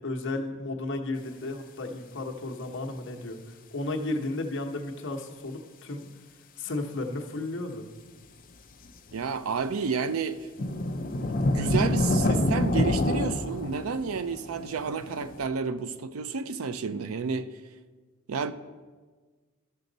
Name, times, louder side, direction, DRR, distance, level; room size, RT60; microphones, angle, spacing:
voice 1, 0.0-3.4 3.7-6.1 6.6-7.9, left 2 dB, 60° left, 1.0 m, -33 dB
sound 1, 8.8-9.6 10.6-15.5, left 1 dB, 40° left, 0.6 m, -27 dB
voice 2, 9.1-10.5 11.2-17.5 18.3-18.5, right 5 dB, 90° right, 0.5 m, -30 dB
13.0 x 6.2 x 3.9 m
head